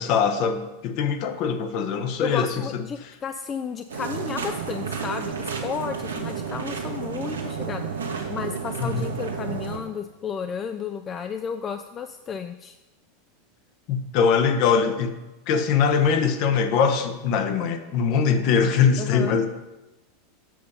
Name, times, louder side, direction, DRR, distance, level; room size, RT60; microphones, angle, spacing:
voice 1, 0.0-2.5 8.8-9.1 13.9-15.2 15.5-19.5, left 6 dB, 50° left, 7 dB, 0.9 m, -22 dB
voice 2, 2.2-12.8 19.0-19.4, left 7 dB, 30° left, 8 dB, 0.4 m, -33 dB
sound 1, 3.9-9.8, right 6 dB, 85° right, 1.2 m, -31 dB
7.7 x 5.4 x 5.3 m, 1.0 s
figure-of-eight pair, 85°, 0 cm